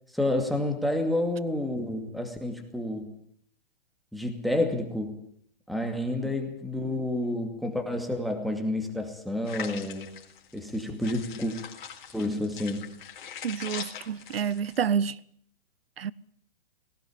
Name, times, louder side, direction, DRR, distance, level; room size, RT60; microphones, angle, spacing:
voice 1, 0.1-3.1 4.1-5.2 5.7-10.1 10.5-11.5 12.1-12.9, left 1 dB, ahead, 2.3 m, -29 dB
sound 1, 9.5-14.8, left 8 dB, 55° left, 4.1 m, -42 dB
voice 2, 13.4-15.2 16.0-16.1, right 7 dB, 85° right, 0.8 m, -29 dB
19.0 x 18.0 x 8.7 m
hypercardioid pair, 135°, 29 cm